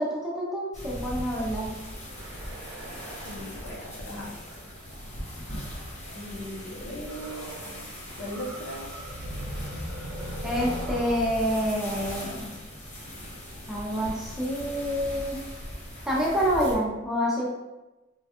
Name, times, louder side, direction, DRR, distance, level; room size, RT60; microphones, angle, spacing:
voice 1, 0.0-1.7 10.4-12.5 13.7-15.4 16.1-17.5, equal, ahead, -5 dB, 0.5 m, -27 dB
sound 1, 0.7-16.8, equal, 35° left, 0.9 m, -40 dB
sound 2, 2.1-6.0 7.1-7.8 8.1-13.0, right 1 dB, 70° right, 0.5 m, -40 dB
voice 2, 3.1-4.3 6.1-7.9 8.1-8.9, equal, 90° left, -2 dB, 0.7 m, -39 dB
3.1 x 2.2 x 2.8 m, 1.0 s
head